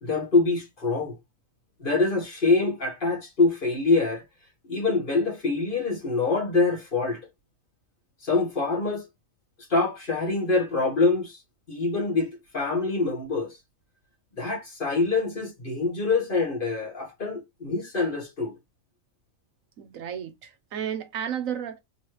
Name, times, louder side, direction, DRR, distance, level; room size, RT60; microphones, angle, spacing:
voice 1, 0.0-1.1 1.8-4.2 4.7-7.2 8.2-9.1 9.7-11.4 11.7-12.3 12.5-13.6 14.4-18.5, left 3 dB, 40° left, 1.5 m, -25 dB
voice 2, 19.8-21.8, right 9 dB, 85° right, 1.2 m, -33 dB
3.9 x 3.2 x 3.0 m
omnidirectional pair, 1.4 m